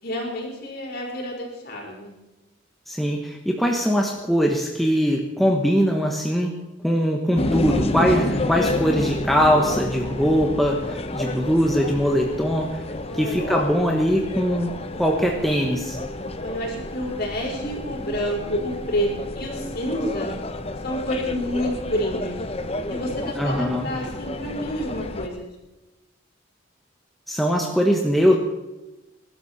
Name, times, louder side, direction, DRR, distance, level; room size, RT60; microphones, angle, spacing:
voice 1, 0.0-2.1 13.1-13.5 16.4-20.3 20.8-22.4 22.9-25.5, equal, 50° left, -1 dB, 4.9 m, -29 dB
voice 2, 2.9-6.5 6.8-12.7 13.1-16.0 23.4-23.9 27.3-28.4, equal, ahead, 0 dB, 1.3 m, -21 dB
sound 1, 7.4-25.3, left 2 dB, 30° left, 0.9 m, -30 dB
22.5 x 12.5 x 4.3 m, 1.1 s
head